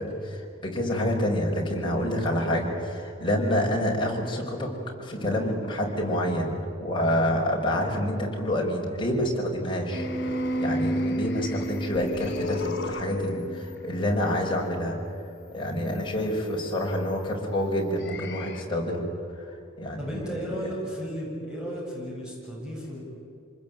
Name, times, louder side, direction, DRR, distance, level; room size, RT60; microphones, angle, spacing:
voice 1, 0.0-4.7 5.0-6.5 6.8-15.0 15.5-19.0 19.3-19.5 19.8-20.0, left 1 dB, 25° left, -1 dB, 5.3 m, -27 dB
sound 1, 9.9-14.3 18.1-18.6, equal, 55° left, 3.6 m, -31 dB
voice 2, 20.0-23.0, equal, 5° right, -4 dB, 7.6 m, -34 dB
26.5 x 20.5 x 9.2 m, 2.7 s
head